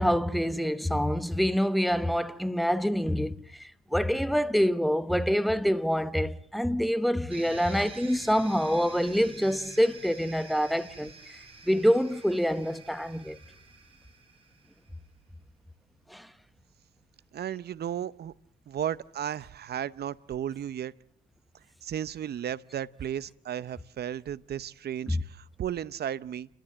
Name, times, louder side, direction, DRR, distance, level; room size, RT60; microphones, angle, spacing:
voice 1, 0.0-13.4 16.1-16.3 25.1-25.2, equal, ahead, 1.0 m, -26 dB
sound 1, 7.3-14.9, right 3 dB, 25° right, 7.1 m, -48 dB
voice 2, 17.3-18.3 18.7-20.9 21.8-26.5, right 10 dB, 55° right, 0.7 m, -34 dB
29.5 x 13.0 x 7.6 m
cardioid pair, 90°, 20 cm